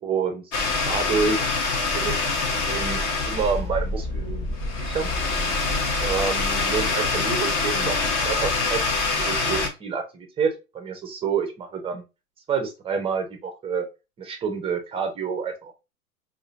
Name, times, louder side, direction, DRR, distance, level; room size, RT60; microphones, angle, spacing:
voice 1, 0.0-0.5 0.8-1.5 1.9-2.3 2.7-4.5 4.8-5.1 6.0-12.0 12.5-13.9 14.2-15.8, right 5 dB, 15° right, 5 dB, 0.5 m, -28 dB
sound 1, 0.5-9.7, left 3 dB, 35° left, 1.0 m, -25 dB
4.9 x 2.5 x 2.5 m, 0.26 s
figure-of-eight pair, 100°, 44 cm